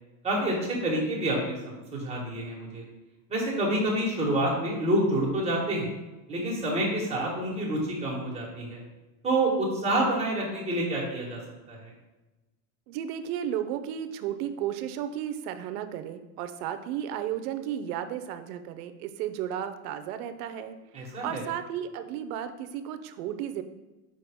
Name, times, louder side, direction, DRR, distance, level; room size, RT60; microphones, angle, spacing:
voice 1, 0.2-2.8 3.3-5.9 6.3-8.8 9.2-11.4 11.7-11.9 20.9-21.4, right 1 dB, 15° right, -3 dB, 1.5 m, -28 dB
voice 2, 12.9-23.6, right 10 dB, 65° right, 10 dB, 0.7 m, -34 dB
5.6 x 5.0 x 3.5 m, 1.1 s
supercardioid pair, 145°, 49 cm